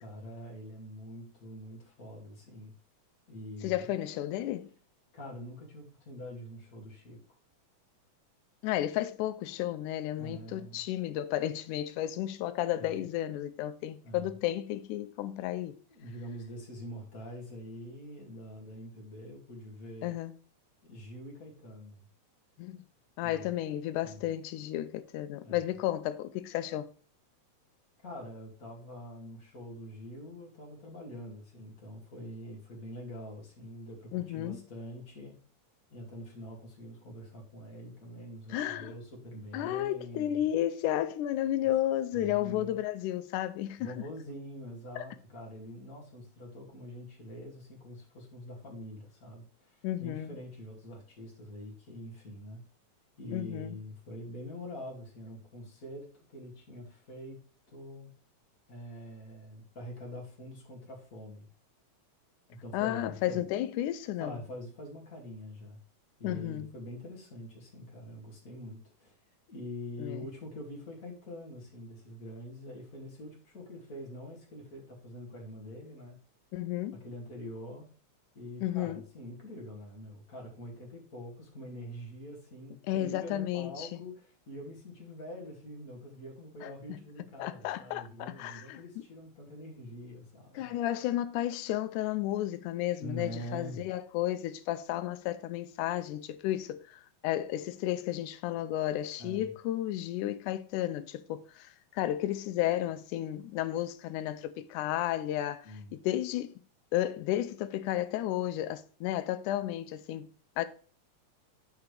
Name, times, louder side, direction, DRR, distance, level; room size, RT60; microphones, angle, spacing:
voice 1, 0.0-2.7 3.3-3.9 5.1-7.2 10.2-10.8 12.7-13.0 14.0-14.3 15.9-20.2 20.8-22.1 23.2-23.5 24.0-24.2 25.4-25.6 28.0-35.3 35.9-40.5 42.1-42.8 43.8-52.6 53.2-57.4 57.7-58.1 58.7-61.5 62.5-63.4 64.2-65.8 66.2-69.1 69.5-76.2 77.0-77.9 78.3-90.7 93.0-93.8 99.2-99.5 105.6-105.9, equal, 30° left, 2.4 m, -45 dB
voice 2, 3.6-4.7 8.6-15.8 20.0-20.3 22.6-22.8 23.2-26.9 34.1-34.6 38.5-38.9 39.5-43.9 45.0-45.1 49.8-50.4 53.3-53.8 62.7-64.4 66.2-66.7 70.0-70.3 76.5-77.0 78.6-79.0 82.9-84.0 86.6-87.0 87.4-89.1 90.6-106.5 106.9-110.7, left 13 dB, 90° left, 2.1 m, -33 dB
10.5 x 4.8 x 3.3 m
omnidirectional pair, 3.5 m